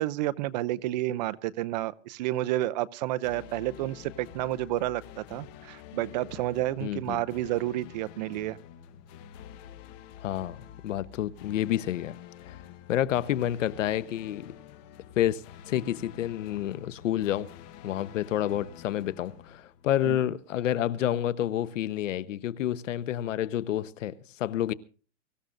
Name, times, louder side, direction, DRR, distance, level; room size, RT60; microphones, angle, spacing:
voice 1, 0.0-8.6 20.1-20.2, right 15 dB, 35° right, 0.6 m, -30 dB
sound 1, 3.2-20.3, left 10 dB, 35° left, 1.2 m, -48 dB
voice 2, 6.8-7.2 10.2-12.2 12.5-12.6 12.9-14.6 15.2-15.4 15.7-17.5 17.8-24.7, left 12 dB, 75° left, 1.0 m, -29 dB
24.0 x 14.5 x 2.6 m
supercardioid pair, 155°, 38 cm